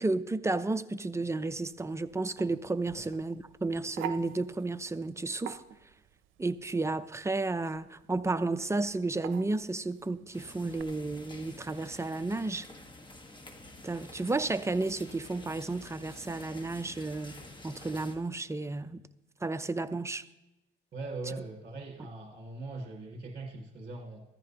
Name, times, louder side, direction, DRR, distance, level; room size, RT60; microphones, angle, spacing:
voice 1, 0.0-5.6 6.4-12.7 13.8-19.0 19.4-20.2, right 3 dB, 15° right, 0.5 m, -32 dB
sound 1, 1.5-10.8, right 10 dB, 85° right, 0.6 m, -47 dB
sound 2, 10.3-18.2, left 2 dB, 25° left, 1.4 m, -49 dB
voice 2, 20.9-24.2, right 3 dB, 45° right, 1.8 m, -41 dB
15.0 x 14.0 x 2.9 m
cardioid pair, 90°, 20 cm